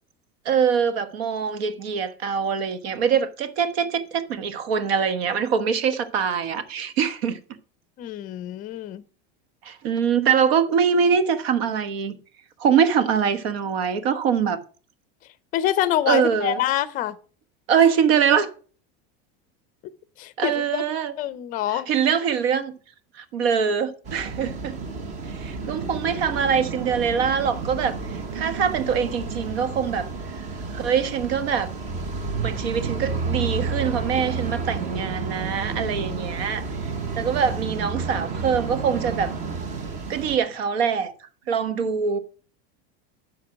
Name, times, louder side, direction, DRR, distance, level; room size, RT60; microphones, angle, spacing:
voice 1, 0.4-7.4 9.6-12.2 12.6-14.6 16.1-16.6 17.7-18.5 20.4-21.1 21.7-22.7 23.1-24.8 25.2-30.1 30.4-30.5 30.7-31.7 32.4-36.7 37.2-39.3 40.1-41.1 41.5-42.2, right 7 dB, 90° right, 1.3 m, -23 dB
voice 2, 8.0-9.0 15.5-17.2 20.2-20.8 21.2-21.9, left 12 dB, 30° left, 0.5 m, -25 dB
sound 1, 24.0-40.4, right 4 dB, 25° right, 0.8 m, -31 dB
12.5 x 4.6 x 6.2 m
cardioid pair, 175°, 30 cm